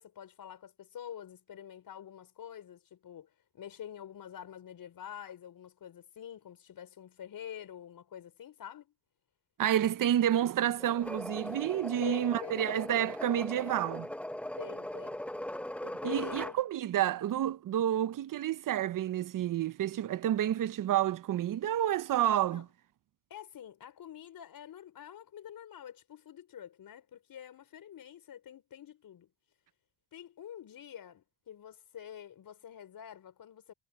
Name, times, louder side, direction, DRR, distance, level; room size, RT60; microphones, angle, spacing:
voice 1, 0.0-3.3 3.5-8.9 12.0-12.8 14.6-15.2 15.8-16.6 22.5-22.6 23.3-29.3 30.1-33.7, left 9 dB, 55° left, 5.1 m, -46 dB
voice 2, 9.6-14.1 16.0-22.7, right 11 dB, 50° right, 0.9 m, -29 dB
sound 1, 10.8-16.6, left 1 dB, 5° left, 0.9 m, -40 dB
cardioid pair, 90°, 42 cm